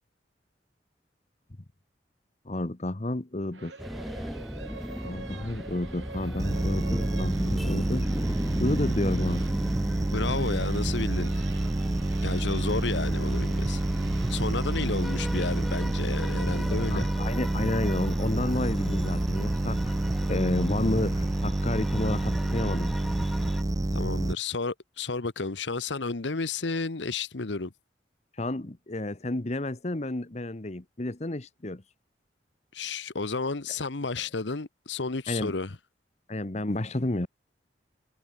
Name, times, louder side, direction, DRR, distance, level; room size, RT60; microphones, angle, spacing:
voice 1, 2.4-3.7 5.0-9.4 14.7-14.9 16.9-19.9 20.3-22.9 28.4-31.8 35.3-35.5 36.3-37.3, left 1 dB, 40° left, 1.1 m, -31 dB
sound 1, 3.5-17.1, right 3 dB, 90° right, 2.0 m, -47 dB
sound 2, 3.8-23.6, equal, ahead, 2.4 m, -38 dB
sound 3, 6.4-24.3, right 1 dB, 20° right, 0.5 m, -28 dB
voice 2, 10.1-11.5 12.2-13.8 14.3-17.0 23.9-27.7 32.7-35.8, left 3 dB, 80° left, 1.2 m, -32 dB
head